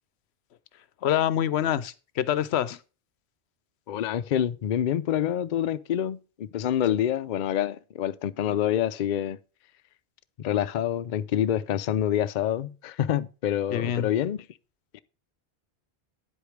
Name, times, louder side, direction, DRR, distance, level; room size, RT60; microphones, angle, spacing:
voice 1, 1.0-2.8 13.7-14.1, left 10 dB, 85° left, 0.9 m, -26 dB
voice 2, 3.9-9.4 10.4-14.4 14.9-15.0, left 10 dB, 55° left, 0.6 m, -27 dB
9.9 x 8.0 x 3.3 m
omnidirectional pair, 1.1 m